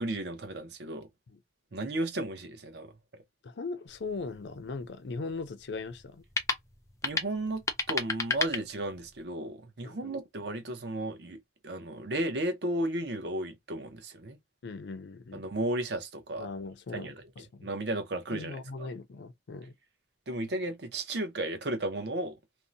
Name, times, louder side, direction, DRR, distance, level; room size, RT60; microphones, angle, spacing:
voice 1, 0.0-1.1 1.7-2.9 7.0-14.4 15.3-16.5 16.9-17.1 17.6-18.9 20.3-22.4, right 1 dB, 70° right, 0.7 m, -34 dB
voice 2, 3.4-6.2 9.8-10.1 14.6-15.4 16.4-17.7 18.3-19.7, left 3 dB, 75° left, 0.5 m, -39 dB
sound 1, 3.9-9.2, left 4 dB, 15° left, 0.4 m, -35 dB
2.6 x 2.0 x 2.6 m
head